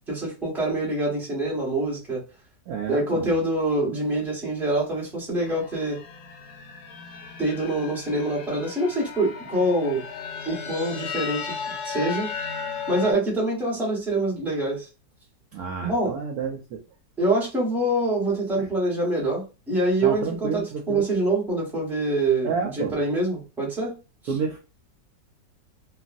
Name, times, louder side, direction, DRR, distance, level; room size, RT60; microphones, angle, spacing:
voice 1, 0.1-2.2 2.9-6.0 7.4-10.0 10.4-11.5 11.8-12.3 12.9-14.9 15.8-16.2 17.2-23.9, right 1 dB, ahead, -4 dB, 0.9 m, -25 dB
voice 2, 2.7-3.3 15.5-16.8 18.6-18.7 20.0-21.0 22.4-23.0 24.3-24.6, right 6 dB, 70° right, 1 dB, 0.9 m, -30 dB
sound 1, 5.4-13.1, left 6 dB, 75° left, 1.1 m, -35 dB
3.0 x 2.4 x 2.5 m, 0.30 s
omnidirectional pair, 1.9 m